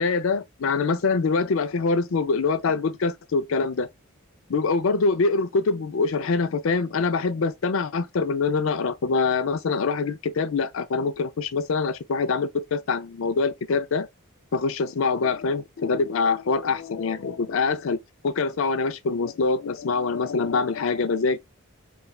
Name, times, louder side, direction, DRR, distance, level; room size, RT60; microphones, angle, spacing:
voice 1, 0.0-3.9 4.5-14.1 14.5-18.0 18.2-21.4, left 4 dB, 65° left, 0.4 m, -24 dB
3.2 x 2.4 x 2.2 m
head